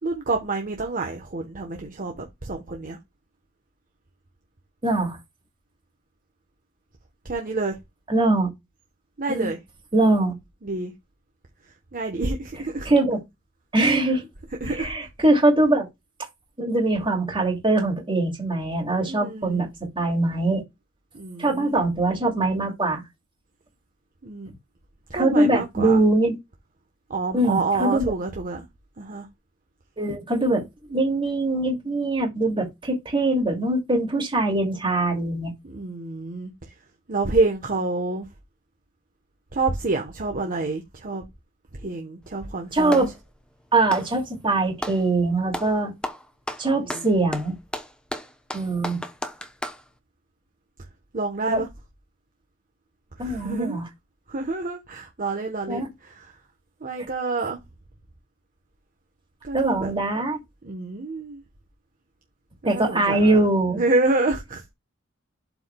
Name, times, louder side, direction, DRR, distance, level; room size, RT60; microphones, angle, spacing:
voice 1, 0.0-3.0 7.2-7.8 9.2-9.6 10.0-10.3 10.6-10.9 11.9-12.9 14.6-14.9 19.1-19.7 21.1-21.7 24.2-24.5 25.1-26.0 27.1-28.6 29.0-29.3 35.6-36.5 37.1-38.3 39.5-41.2 41.8-43.0 46.7-47.3 51.1-51.7 53.2-53.8 54.3-56.3 56.8-57.6 59.4-59.9 60.6-61.4 62.6-63.4 63.7-64.6, right 3 dB, 40° right, 1.1 m, -28 dB
voice 2, 4.8-5.2 8.1-8.5 9.3-9.5 9.9-10.4 12.8-13.2 13.7-14.3 14.7-15.9 16.6-20.6 21.4-23.0 25.1-26.3 27.3-28.1 30.0-35.5 42.7-43.1 43.7-45.9 46.6-47.5 48.5-49.0 51.5-51.6 53.2-53.8 55.7-55.9 59.5-60.4 62.6-63.8, right 2 dB, 25° right, 2.6 m, -22 dB
Clapping, 42.2-43.2 43.8-45.0 45.5-45.8 46.0-49.8, left 1 dB, 5° left, 0.8 m, -33 dB
12.0 x 4.7 x 2.3 m
head